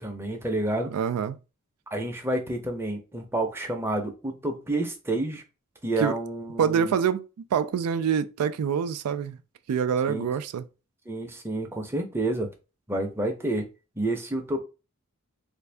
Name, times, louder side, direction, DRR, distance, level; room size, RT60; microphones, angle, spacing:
voice 1, 0.0-1.0 1.9-5.4 5.8-6.9 10.1-10.3 11.1-12.5 12.9-13.7 14.0-14.6, right 2 dB, 10° right, 0.6 m, -29 dB
voice 2, 0.9-1.4 6.0-6.1 6.6-9.4 9.7-10.7, right 7 dB, 90° right, 0.3 m, -26 dB
3.3 x 2.6 x 3.3 m
head